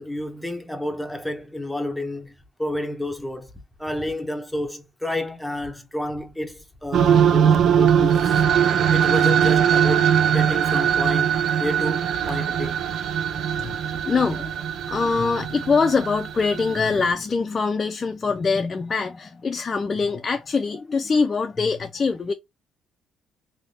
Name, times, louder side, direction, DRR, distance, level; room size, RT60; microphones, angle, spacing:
voice 1, 0.0-2.3 2.6-3.5 3.8-8.4 8.9-12.8, left 1 dB, 5° left, 0.8 m, -30 dB
sound 1, 6.9-17.1, right 8 dB, 60° right, 0.5 m, -21 dB
voice 2, 13.6-14.5 14.9-22.3, left 4 dB, 30° left, 0.4 m, -23 dB
3.4 x 2.8 x 2.7 m
cardioid pair, 110°, 0 cm